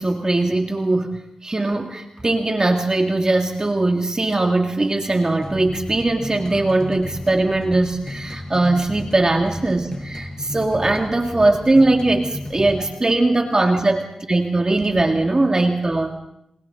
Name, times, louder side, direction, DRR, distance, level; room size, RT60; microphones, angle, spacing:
voice 1, 0.0-16.1, right 2 dB, 35° right, 3 dB, 2.1 m, -20 dB
sound 1, 5.4-12.8, left 1 dB, 30° left, 7.1 m, -34 dB
29.5 x 29.0 x 3.9 m, 0.78 s
cardioid pair, 50°, 2 cm